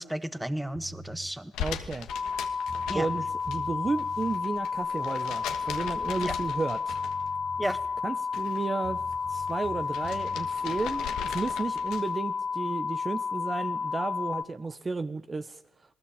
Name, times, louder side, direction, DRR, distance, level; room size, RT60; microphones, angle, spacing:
voice 1, 0.0-1.5 2.9-3.1 6.2-6.3 7.6-7.8, right 1 dB, 5° right, 13 dB, 1.7 m, -33 dB
sound 1, 0.7-1.3 2.3-2.4 2.7-4.4 6.5-6.6 6.9-8.1 8.8-10.5, right 4 dB, 55° right, 2.1 m, -45 dB
sound 2, 1.5-3.6 3.9-7.4 7.7-8.6 9.0-12.2, left 9 dB, 90° left, 2.6 m, -40 dB
voice 2, 1.6-2.1 2.9-7.0 8.0-9.0 9.3-15.6, right 3 dB, 30° right, 10 dB, 1.3 m, -33 dB
sound 3, 2.1-14.4, left 5 dB, 45° left, 1.5 m, -32 dB
28.5 x 20.0 x 8.9 m, 0.80 s
cardioid pair, 90°, 0 cm